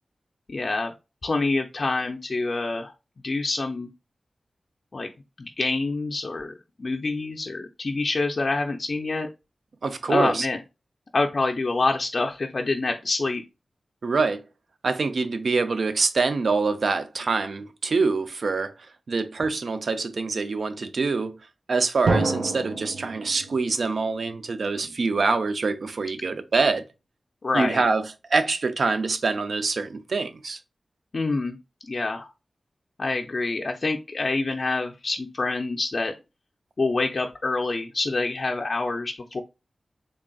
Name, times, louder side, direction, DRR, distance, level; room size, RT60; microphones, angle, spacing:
voice 1, 0.5-0.9 1.2-2.9 3.2-3.9 4.9-5.1 5.4-9.3 10.1-10.6 11.1-13.4 27.4-27.8 31.1-31.6 31.8-32.3 33.0-36.1 36.8-39.4, left 3 dB, 50° left, 0.4 m, -26 dB
voice 2, 9.8-10.5 14.0-14.4 14.8-18.7 19.1-21.4 21.7-26.9 27.5-30.6, right 4 dB, 70° right, 0.4 m, -25 dB
Drum, 22.1-24.8, right 3 dB, 85° right, 1.0 m, -28 dB
3.7 x 3.5 x 2.2 m
wide cardioid pair, 115°, 0 cm